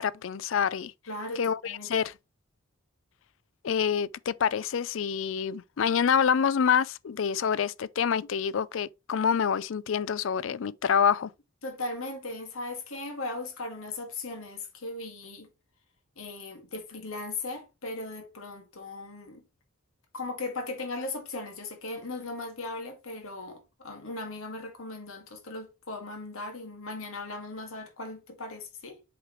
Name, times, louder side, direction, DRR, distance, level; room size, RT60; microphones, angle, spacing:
voice 1, 0.0-0.9 1.4-2.1 3.6-11.3, left 7 dB, 70° left, 0.4 m, -27 dB
voice 2, 1.1-1.9 11.6-15.5 16.2-19.4 20.1-29.0, left 2 dB, 85° left, 2.1 m, -38 dB
7.7 x 4.9 x 3.2 m
head